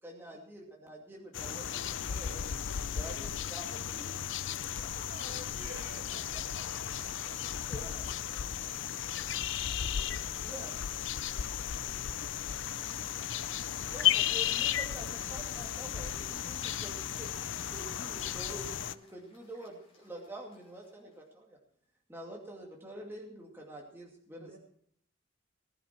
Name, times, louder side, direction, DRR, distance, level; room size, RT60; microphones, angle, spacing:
voice 1, 0.0-1.6 2.1-2.4 3.0-4.1 7.7-8.0 10.4-10.7 13.8-17.3 17.7-21.6 22.1-24.6, right 1 dB, 10° right, -2 dB, 2.4 m, -47 dB
sound 1, 1.3-18.9, left 10 dB, 65° left, 0.5 m, -35 dB
voice 2, 1.8-2.6 3.2-3.3 4.1-4.5 5.1-6.0 6.7-7.5 8.0-8.9 9.1-12.0, right 2 dB, 75° right, 0 dB, 5.8 m, -56 dB
voice 3, 4.9-5.8 6.1-7.1 8.0-8.1 24.4-24.6, right 2 dB, 45° right, 1 dB, 1.6 m, -51 dB
Cheering / Applause / Crowd, 14.3-21.4, left 2 dB, 30° left, 5.6 m, -62 dB
19.5 x 10.5 x 4.5 m, 0.65 s
head